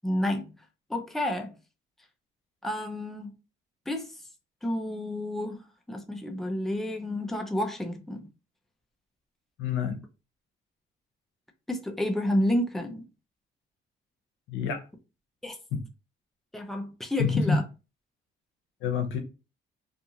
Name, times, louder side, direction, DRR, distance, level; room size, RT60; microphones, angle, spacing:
voice 1, 0.0-0.5 0.9-1.5 2.6-3.3 3.9-4.1 4.6-5.6 5.9-8.3 11.7-13.0 15.4-15.6 16.5-17.6, left 1 dB, ahead, 0.6 m, -30 dB
voice 2, 9.6-10.0 14.5-14.8 15.7-15.8 17.2-17.6 18.8-19.2, left 5 dB, 85° left, 0.7 m, -27 dB
2.6 x 2.5 x 2.8 m
cardioid pair, 90°, 20 cm